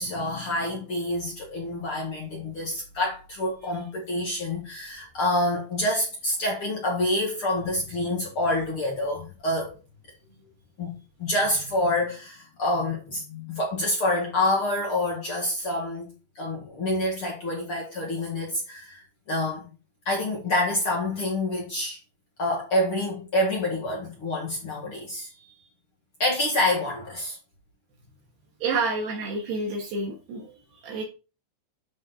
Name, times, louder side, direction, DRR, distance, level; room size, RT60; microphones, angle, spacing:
voice 1, 0.0-9.7 10.8-19.7 20.0-22.0 22.4-25.5 26.2-27.4, left 1 dB, 60° left, 1.3 m, -27 dB
voice 2, 28.6-31.0, right 3 dB, 65° right, 3.4 m, -29 dB
11.5 x 4.8 x 3.9 m
omnidirectional pair, 5.6 m